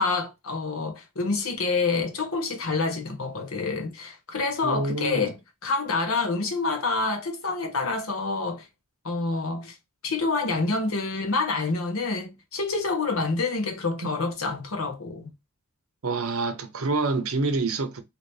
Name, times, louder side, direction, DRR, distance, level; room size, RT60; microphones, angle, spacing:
voice 1, 0.0-8.7 9.0-9.7 10.0-15.3, left 3 dB, 65° left, 1.0 m, -27 dB
voice 2, 4.6-5.3 16.0-18.0, right 3 dB, 70° right, 0.7 m, -27 dB
2.9 x 2.8 x 3.2 m
head